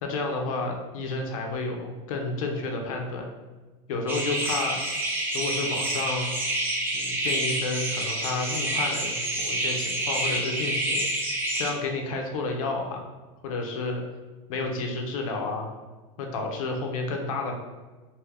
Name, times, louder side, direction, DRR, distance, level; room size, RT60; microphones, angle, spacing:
voice 1, 0.0-3.3 3.9-4.8 5.3-6.3 6.9-11.1 11.6-13.0 13.4-14.0 14.5-15.7 16.2-17.5, left 3 dB, 90° left, 2 dB, 0.5 m, -31 dB
sound 1, 4.1-11.7, right 1 dB, 10° right, 0.5 m, -28 dB
2.5 x 2.4 x 3.3 m, 1.3 s
supercardioid pair, 110°, 17 cm